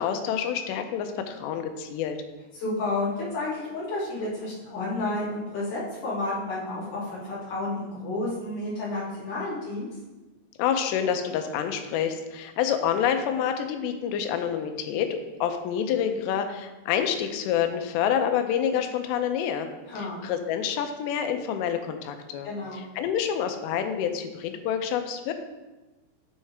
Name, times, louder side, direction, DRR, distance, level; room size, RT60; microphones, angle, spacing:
voice 1, 0.0-2.2 10.6-19.7 20.0-22.5 22.7-25.3, left 8 dB, 85° left, 7 dB, 2.8 m, -27 dB
voice 2, 2.5-9.9 19.9-20.2 22.4-22.8, left 2 dB, 50° left, -11 dB, 3.6 m, -31 dB
9.7 x 3.6 x 3.3 m, 1.2 s
omnidirectional pair, 4.8 m